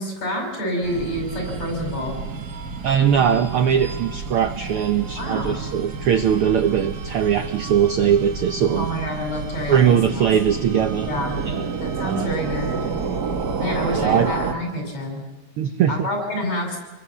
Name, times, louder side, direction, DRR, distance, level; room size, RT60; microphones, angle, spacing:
voice 1, 0.0-2.2 5.1-5.6 8.7-9.8 10.1-10.3 11.0-11.3 11.8-12.9 13.6-15.2 15.9-16.8, equal, 55° left, 2 dB, 6.6 m, -27 dB
sound 1, 0.8-14.5, right 5 dB, 50° right, 1.3 m, -30 dB
voice 2, 2.8-8.9 9.7-11.7 12.0-12.3 13.9-14.3 15.6-16.1, right 8 dB, 75° right, 8 dB, 1.2 m, -20 dB
27.0 x 22.5 x 7.2 m, 1.3 s
omnidirectional pair, 3.6 m